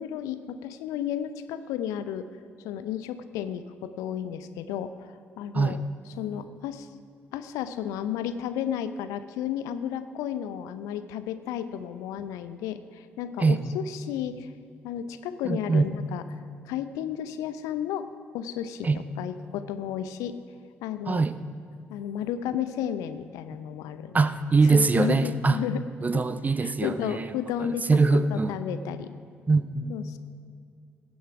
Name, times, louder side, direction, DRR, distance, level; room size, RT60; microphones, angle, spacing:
voice 1, 0.0-2.3 2.6-5.8 6.2-6.9 7.3-14.5 14.8-16.2 16.7-18.1 18.3-18.9 19.2-20.4 20.8-21.2 21.9-24.2 24.6-25.8 26.1-26.2 26.6-29.1 29.9-30.2, left 9 dB, 65° left, 12 dB, 0.5 m, -33 dB
voice 2, 15.4-15.9 18.8-19.0 21.1-21.3 24.1-25.6 26.0-27.3 27.9-28.6 29.5-29.9, right 3 dB, 25° right, 13 dB, 0.5 m, -22 dB
17.0 x 7.2 x 4.8 m, 2.4 s
figure-of-eight pair, 40°, 6 cm